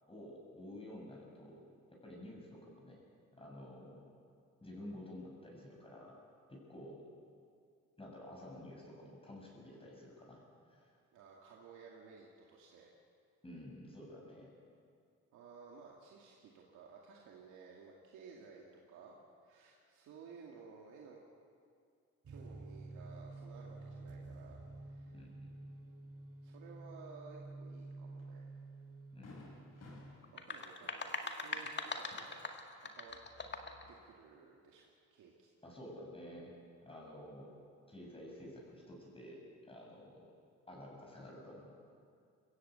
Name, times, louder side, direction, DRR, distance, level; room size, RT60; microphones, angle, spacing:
voice 1, 0.1-1.7 2.0-3.0 3.3-4.0 4.6-6.1 6.5-7.1 8.0-10.4 10.7-10.9 13.4-14.5 25.1-25.5 29.1-29.5 35.6-36.5 36.8-37.5 37.9-39.4 39.7-40.3 40.7-41.7, left 1 dB, 20° left, -2 dB, 7.1 m, -51 dB
voice 2, 11.1-12.9 15.3-19.2 19.4-21.2 22.3-25.1 26.4-28.5 30.3-32.4 32.8-33.2 33.9-35.5, right 5 dB, 90° right, -2 dB, 2.4 m, -56 dB
sound 1, 22.2-30.1, right 2 dB, 50° right, 2.0 m, -50 dB
Fireworks, 28.2-28.3 28.7-28.8 29.2-33.0 33.3-34.2, left 3 dB, 55° left, 7.6 m, -59 dB
sound 2, 30.2-33.9, left 3 dB, 35° left, 2.1 m, -42 dB
22.0 x 16.0 x 8.2 m, 2.3 s
cardioid pair, 90°, 30 cm